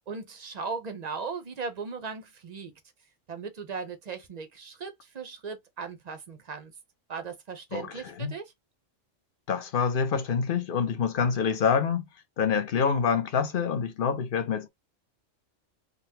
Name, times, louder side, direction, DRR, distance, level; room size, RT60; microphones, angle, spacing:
voice 1, 0.1-2.7 3.3-6.7 7.1-8.5, right 5 dB, 45° right, 0.6 m, -37 dB
voice 2, 7.7-8.3 9.5-12.0 12.4-14.7, left 6 dB, 50° left, 0.8 m, -26 dB
3.8 x 2.2 x 2.7 m
omnidirectional pair, 1.3 m